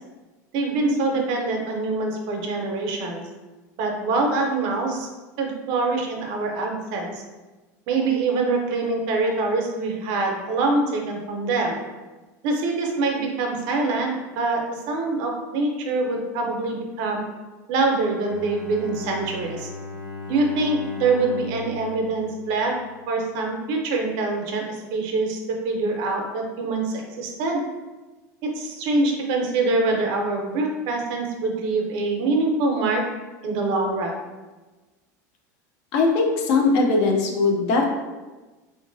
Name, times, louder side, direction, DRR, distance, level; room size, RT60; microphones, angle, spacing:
voice 1, 0.5-3.2 3.8-5.1 5.4-7.2 7.9-11.8 12.4-17.2 17.7-19.7 20.3-22.7 23.1-25.4 25.6-27.6 28.5-33.0 33.4-34.2, right 3 dB, 60° right, 2 dB, 0.6 m, -24 dB
Bowed string instrument, 18.2-23.2, left 3 dB, 85° left, 0.9 m, -37 dB
voice 2, 35.9-37.9, left 3 dB, 65° left, 1 dB, 0.6 m, -20 dB
2.9 x 2.5 x 2.5 m, 1.2 s
hypercardioid pair, 100°, 9 cm